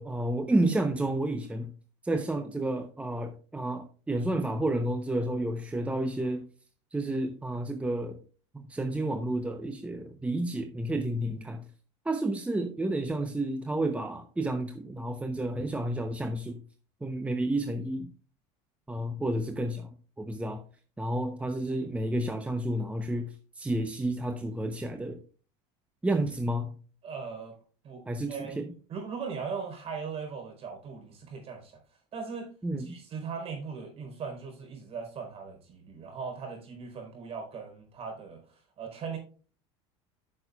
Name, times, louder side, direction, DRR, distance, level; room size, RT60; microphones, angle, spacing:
voice 1, 0.0-1.7 2.0-6.5 6.9-8.2 8.5-11.6 12.1-16.6 17.0-18.1 18.9-19.9 20.2-20.6 21.0-25.2 26.0-26.8 28.1-28.6 32.6-33.0, right 1 dB, 10° right, 0.8 m, -30 dB
voice 2, 27.0-27.6 27.8-28.0 28.3-31.8 32.1-32.5 32.8-39.2, right 5 dB, 45° right, 4.2 m, -39 dB
13.0 x 6.5 x 2.4 m
supercardioid pair, 105°, 14 cm